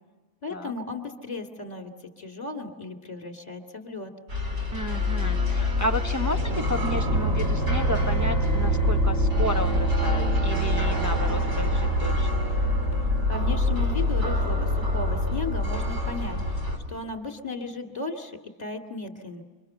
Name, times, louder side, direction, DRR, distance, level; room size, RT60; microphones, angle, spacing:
voice 1, 0.4-1.9 2.2-4.1 13.3-16.6 16.9-19.4, left 3 dB, 30° left, 3 dB, 2.6 m, -35 dB
sound 1, 4.3-16.8, left 1 dB, 50° right, 4.3 m, -25 dB
voice 2, 4.7-12.3, equal, 20° right, 3 dB, 0.5 m, -32 dB
29.0 x 25.5 x 6.8 m, 1.2 s
omnidirectional pair, 1.5 m